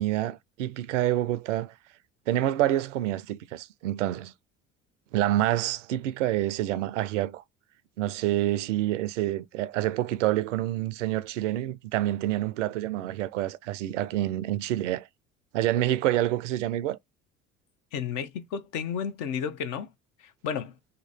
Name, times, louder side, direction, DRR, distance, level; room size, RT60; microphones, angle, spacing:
voice 1, 0.0-1.7 2.3-4.3 5.1-7.4 8.0-15.1 15.5-17.0, right 14 dB, 75° right, 0.5 m, -27 dB
voice 2, 17.9-19.9 20.4-20.7, left 7 dB, 55° left, 0.8 m, -32 dB
2.9 x 2.7 x 4.2 m
hypercardioid pair, 60°, 37 cm